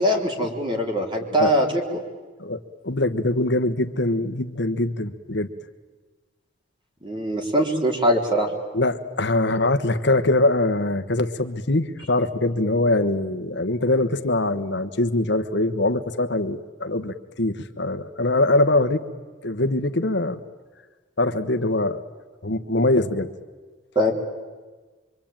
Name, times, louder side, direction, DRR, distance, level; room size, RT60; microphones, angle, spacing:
voice 1, 0.0-1.8 7.0-8.5 24.0-24.1, equal, 25° right, 2 dB, 3.7 m, -22 dB
voice 2, 2.4-5.5 8.7-19.1 19.4-20.4 21.2-22.0 22.4-23.3, left 2 dB, 65° left, 9 dB, 1.3 m, -23 dB
25.0 x 25.0 x 9.0 m, 1.4 s
head